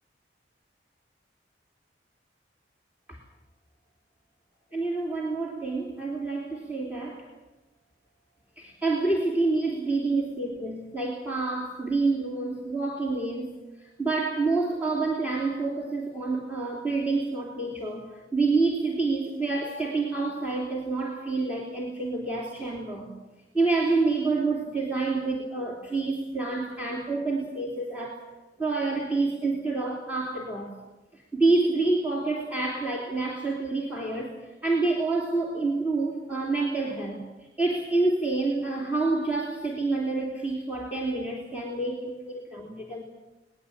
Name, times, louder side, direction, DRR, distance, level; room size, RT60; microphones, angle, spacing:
voice 1, 4.7-7.3 8.6-13.5 13.8-23.1 23.5-28.3 28.6-30.8 31.1-37.2 37.6-43.0, right 3 dB, 10° right, -3 dB, 3.1 m, -28 dB
21.5 x 20.0 x 8.8 m, 1.1 s
head